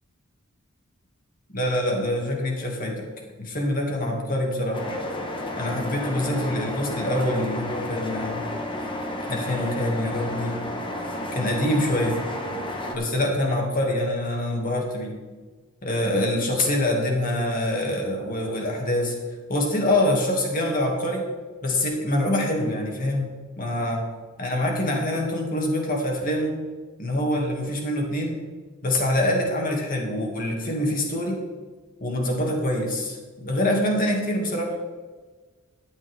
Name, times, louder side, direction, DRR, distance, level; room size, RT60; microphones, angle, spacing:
voice 1, 1.5-3.1 3.4-4.8 5.6-8.4 9.3-10.6 11.3-12.2 12.9-15.2 15.8-19.1 19.5-21.3 21.6-24.0 24.4-26.6 27.0-28.4 28.8-31.4 32.0-34.7, left 1 dB, 40° left, 0 dB, 2.5 m, -25 dB
sound 1, 4.7-13.0, left 1 dB, 25° left, 1.4 m, -31 dB
13.0 x 9.5 x 3.7 m, 1.4 s
head